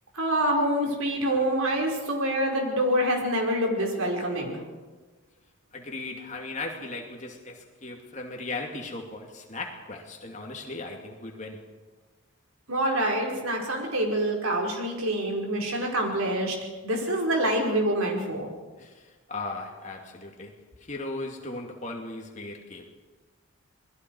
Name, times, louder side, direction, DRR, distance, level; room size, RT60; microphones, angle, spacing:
voice 1, 0.1-4.6 12.7-16.6 16.8-18.5, right 1 dB, 90° right, 1 dB, 4.8 m, -26 dB
voice 2, 5.7-11.6 18.8-20.5 20.8-22.9, left 2 dB, 35° left, 1 dB, 2.6 m, -37 dB
27.5 x 21.0 x 4.8 m, 1.3 s
head